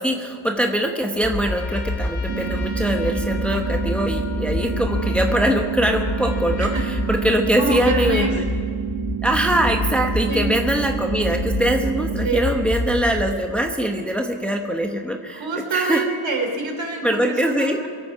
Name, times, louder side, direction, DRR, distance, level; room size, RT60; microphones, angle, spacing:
voice 1, 0.0-8.4 9.2-15.5 15.7-16.0 17.0-17.8, equal, ahead, 3 dB, 1.0 m, -22 dB
sound 1, 1.2-13.2, left 1 dB, 35° left, 3.6 m, -27 dB
Trumpet, 1.3-7.9, left 4 dB, 80° left, 2.0 m, -40 dB
sound 2, 2.3-12.3, right 11 dB, 50° right, 0.6 m, -29 dB
voice 2, 7.6-8.3 10.3-10.5 12.2-12.5 15.3-17.9, right 3 dB, 65° right, 3 dB, 3.2 m, -26 dB
23.5 x 8.7 x 5.9 m, 2.1 s
wide cardioid pair, 115°, 49 cm